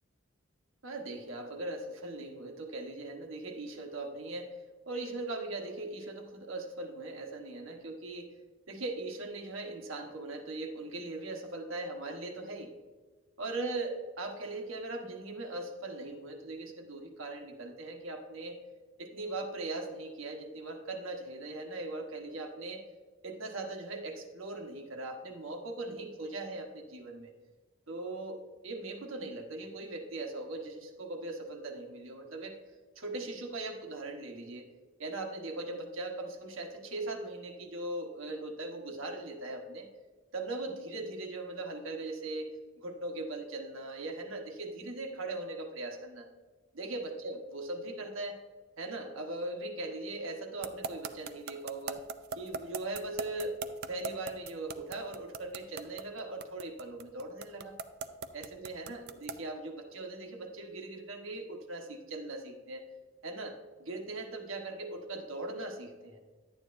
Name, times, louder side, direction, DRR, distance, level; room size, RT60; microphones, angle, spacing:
voice 1, 0.8-4.6 4.9-8.3 8.7-12.7 13.4-18.6 19.0-22.8 23.2-27.3 27.9-32.6 32.9-34.7 35.0-39.9 40.3-42.5 42.8-46.3 46.7-48.4 48.8-52.0 52.3-57.8 58.3-62.9 63.2-66.2, right 2 dB, 75° right, 3 dB, 1.2 m, -40 dB
sound 1, 50.6-59.5, right 5 dB, 55° right, 0.5 m, -39 dB
11.0 x 9.1 x 2.6 m, 1.4 s
head